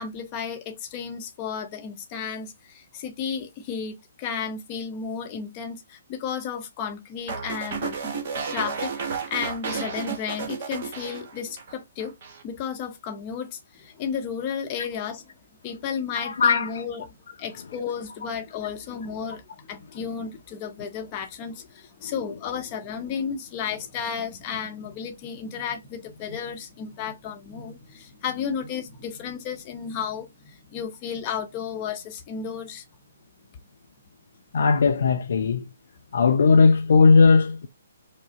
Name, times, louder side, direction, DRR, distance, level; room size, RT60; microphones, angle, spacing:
voice 1, 0.0-8.0 8.5-12.1 12.4-15.2 15.6-17.1 17.4-32.8, left 7 dB, 30° left, 0.8 m, -33 dB
sound 1, 7.3-11.7 12.0-12.4, right 5 dB, 40° right, 1.0 m, -32 dB
voice 2, 16.2-16.9 22.0-22.1 34.5-35.6 36.1-37.7, left 4 dB, 55° left, 0.4 m, -18 dB
4.8 x 2.0 x 3.7 m
figure-of-eight pair, 130°, 0 cm